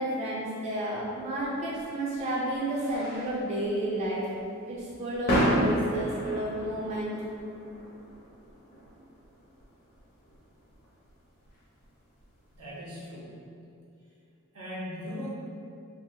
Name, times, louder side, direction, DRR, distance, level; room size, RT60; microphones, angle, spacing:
voice 1, 0.0-4.3 4.7-7.2, right 1 dB, 30° right, -6 dB, 0.3 m, -31 dB
sound 1, 1.4-12.7, equal, 45° left, 0.5 m, -34 dB
voice 2, 12.6-13.5 14.5-15.3, left 1 dB, 90° right, -7 dB, 0.8 m, -39 dB
2.7 x 2.0 x 2.6 m, 2.5 s
head